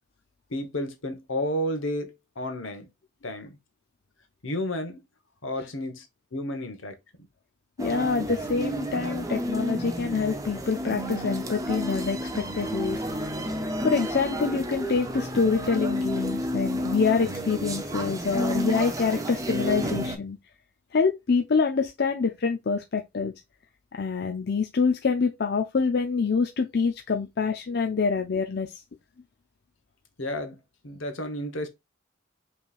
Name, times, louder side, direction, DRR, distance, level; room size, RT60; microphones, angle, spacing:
voice 1, 0.5-2.9 3.2-3.6 4.4-5.0 5.4-6.1 6.3-7.0 30.2-30.5 30.8-31.7, left 1 dB, 75° left, 1.2 m, -31 dB
voice 2, 7.8-13.2 13.8-20.4 20.9-23.3 23.9-28.8, left 5 dB, 55° left, 0.5 m, -26 dB
sound 1, 7.8-20.2, equal, 15° right, 0.7 m, -31 dB
5.4 x 3.3 x 2.4 m
head